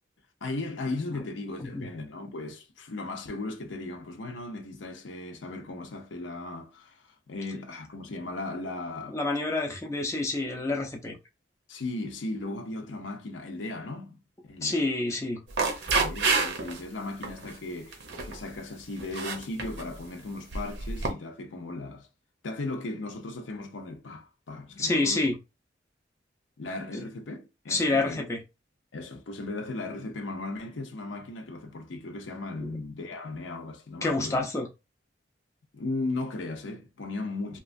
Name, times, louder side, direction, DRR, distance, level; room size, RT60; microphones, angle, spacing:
voice 1, 0.4-9.2 11.7-14.8 15.9-22.1 22.4-25.3 26.6-28.2 28.9-34.5 35.7-37.6, left 2 dB, 85° left, 0.6 m, -37 dB
voice 2, 9.1-11.2 14.6-15.4 24.8-25.4 27.7-28.4 32.6-32.7 34.0-34.7, left 2 dB, 15° left, 0.5 m, -28 dB
sound 1, 15.5-16.8 17.2-17.5 17.9-18.4 19.0-19.9 20.5-21.1, right 4 dB, 65° right, 0.6 m, -28 dB
2.9 x 2.3 x 2.5 m
head